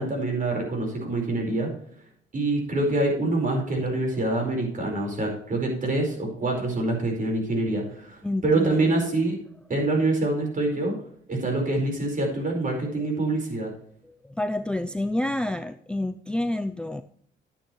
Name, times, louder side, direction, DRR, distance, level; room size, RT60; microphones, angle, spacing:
voice 1, 0.0-1.7 2.3-9.4 9.7-10.9 11.3-13.7, right 2 dB, 40° right, 1 dB, 4.8 m, -25 dB
voice 2, 8.2-9.0 14.2-17.0, left 1 dB, 5° left, 10 dB, 0.5 m, -28 dB
11.5 x 9.5 x 3.2 m, 0.63 s
cardioid pair, 90°, 20 cm